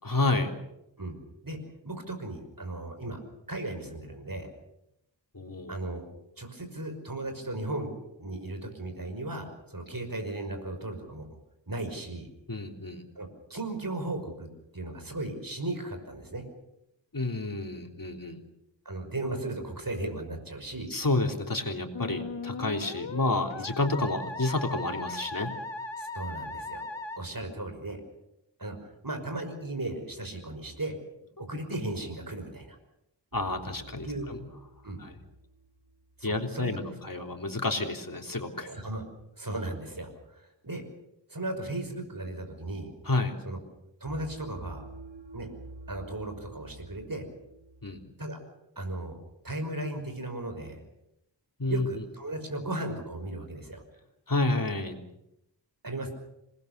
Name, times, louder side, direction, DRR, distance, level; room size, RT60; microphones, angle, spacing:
voice 1, 0.0-0.5 5.3-5.7 12.5-13.0 17.1-18.4 20.9-25.5 33.3-34.4 35.0-35.2 36.2-38.7 43.1-43.3 47.8-48.0 51.6-51.9 54.3-55.0, left 2 dB, 50° left, 3 dB, 3.5 m, -30 dB
voice 2, 1.8-3.2 3.5-4.5 5.7-6.0 6.4-11.3 11.7-12.3 13.2-16.4 18.9-20.9 26.0-26.9 27.2-28.0 28.6-31.0 31.4-32.8 34.0-34.3 34.8-35.0 36.2-36.8 38.6-39.0 39.4-40.8 41.3-42.9 43.4-43.6 44.0-44.8 45.3-45.5 45.9-47.2 48.2-48.4 48.8-49.2 49.4-50.8 51.6-53.8 55.8-56.2, right 2 dB, 50° right, 6 dB, 5.8 m, -36 dB
Musical instrument, 21.9-27.2, left 3 dB, 80° left, 1.6 m, -38 dB
sound 1, 33.3-36.4 44.1-48.0, right 2 dB, 75° right, 7.7 m, -48 dB
27.0 x 20.5 x 6.8 m, 0.85 s
wide cardioid pair, 55°, 44 cm